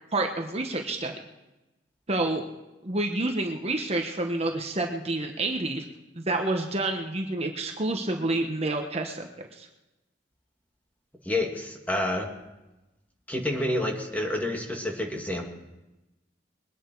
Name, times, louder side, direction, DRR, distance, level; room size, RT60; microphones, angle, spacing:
voice 1, 0.1-1.1 2.1-2.4 2.8-5.8 6.2-9.7, right 2 dB, 35° right, 3 dB, 1.2 m, -28 dB
voice 2, 11.2-12.3 13.3-15.5, left 1 dB, 10° left, 1 dB, 2.1 m, -28 dB
22.5 x 10.0 x 4.7 m, 1.0 s
head